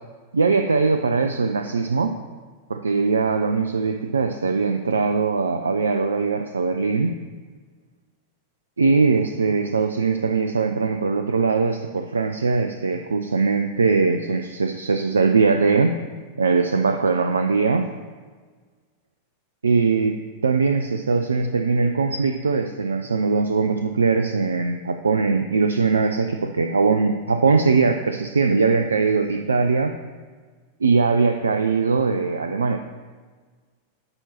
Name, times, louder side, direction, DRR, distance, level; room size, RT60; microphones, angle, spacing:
voice 1, 0.3-2.2 2.7-7.2 8.8-16.0 16.4-17.9 19.6-20.2 20.4-29.9 30.8-32.8, right 4 dB, 75° right, 6 dB, 0.3 m, -21 dB
9.6 x 5.9 x 2.9 m, 1.5 s
figure-of-eight pair, 90°, 0 cm